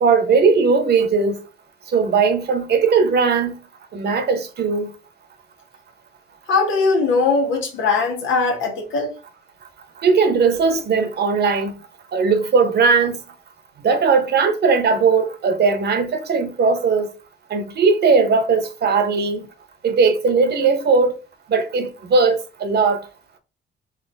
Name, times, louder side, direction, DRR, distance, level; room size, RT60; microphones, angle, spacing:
voice 1, 0.0-1.4 1.9-3.5 3.9-4.9 10.0-11.7 12.1-13.2 13.8-17.1 17.5-19.5 19.8-21.1 21.5-23.0, right 4 dB, 55° right, 1.1 m, -18 dB
voice 2, 6.5-9.2, left 4 dB, 85° left, 1.6 m, -20 dB
4.2 x 2.8 x 4.0 m
cardioid pair, 90°, 20 cm